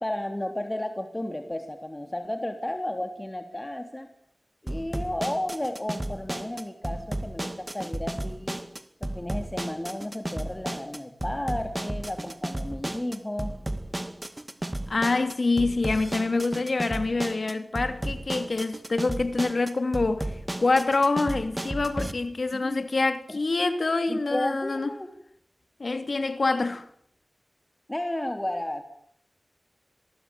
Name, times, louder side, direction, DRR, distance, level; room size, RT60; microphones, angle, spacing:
voice 1, 0.0-4.1 4.6-8.6 9.0-13.5 22.5-22.8 23.3-23.4 24.1-25.1 27.9-28.8, left 1 dB, 20° left, 3.2 m, -33 dB
sound 1, 4.7-22.1, right 1 dB, 20° right, 2.0 m, -34 dB
voice 2, 14.9-24.9 25.8-26.9, left 3 dB, 70° left, 3.0 m, -26 dB
28.0 x 21.5 x 9.2 m
wide cardioid pair, 65°, 0 cm